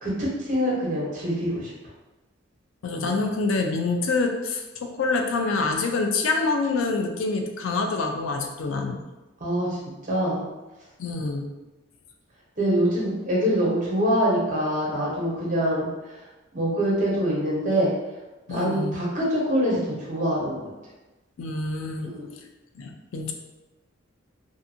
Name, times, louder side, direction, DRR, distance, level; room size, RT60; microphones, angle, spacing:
voice 1, 0.0-1.7 2.9-3.1 9.4-9.7 10.1-10.4 12.6-15.9 16.5-17.9 18.5-20.7 22.0-22.3, equal, 40° right, -5 dB, 0.9 m, -24 dB
voice 2, 2.8-9.0 11.0-11.5 18.5-19.0 21.4-22.1 22.8-23.3, left 3 dB, 90° left, 4 dB, 0.4 m, -26 dB
2.5 x 2.5 x 2.7 m, 1.1 s
head